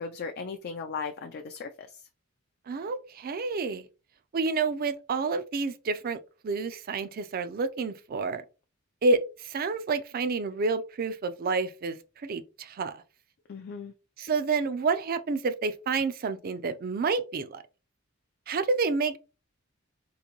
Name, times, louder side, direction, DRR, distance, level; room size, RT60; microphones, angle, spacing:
voice 1, 0.0-2.0 13.5-13.9, left 5 dB, 50° left, 0.4 m, -37 dB
voice 2, 2.7-3.9 4.3-6.2 6.4-8.4 9.0-13.0 14.2-17.6 18.5-19.2, right 4 dB, 45° right, 0.4 m, -29 dB
3.8 x 2.6 x 2.9 m
head